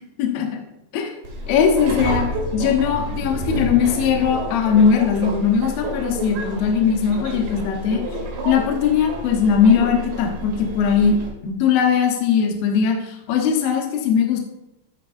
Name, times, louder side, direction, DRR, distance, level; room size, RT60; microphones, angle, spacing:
Subway metro underground, 1.2-11.3, right 1 dB, 60° right, 2.6 m, -29 dB
voice 1, 1.5-2.3 2.5-8.0 8.4-11.2 11.4-14.4, left 7 dB, 70° left, 2 dB, 2.6 m, -19 dB
13.5 x 4.6 x 2.6 m, 0.95 s
omnidirectional pair, 4.9 m